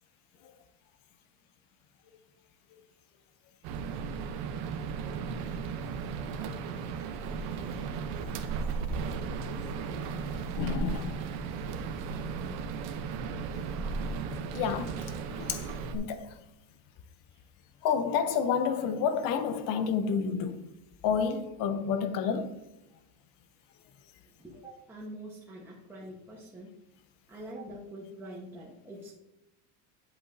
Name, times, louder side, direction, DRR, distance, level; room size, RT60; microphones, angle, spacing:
sound 1, 3.6-15.9, right 5 dB, 55° right, 0.9 m, -35 dB
voice 1, 9.9-11.3 14.3-16.4 17.8-20.6 21.0-22.6, left 6 dB, 50° left, 0.8 m, -30 dB
voice 2, 24.2-26.8 27.3-29.1, right 1 dB, 5° right, 1.1 m, -45 dB
9.9 x 8.1 x 2.7 m
cardioid pair, 155°, 43 cm